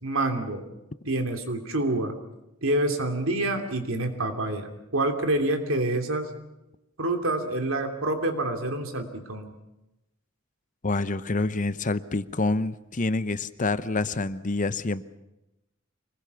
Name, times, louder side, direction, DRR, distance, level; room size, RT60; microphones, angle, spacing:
voice 1, 0.0-0.7 1.1-2.1 2.6-6.3 7.0-9.5, right 2 dB, 80° right, 5 dB, 3.0 m, -27 dB
voice 2, 10.8-15.0, left 3 dB, 40° left, 14 dB, 0.8 m, -27 dB
25.5 x 20.5 x 7.0 m, 0.92 s
head